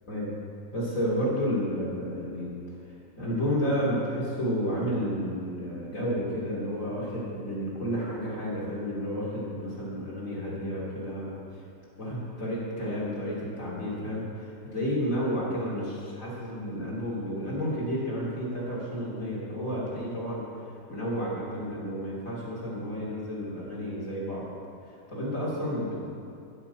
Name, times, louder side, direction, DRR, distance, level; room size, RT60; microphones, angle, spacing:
voice 1, 0.7-2.6 2.9-11.3 12.0-24.4 24.9-26.0, equal, 45° left, -6 dB, 3.2 m, -31 dB
14.5 x 6.1 x 8.0 m, 2.6 s
omnidirectional pair, 1.9 m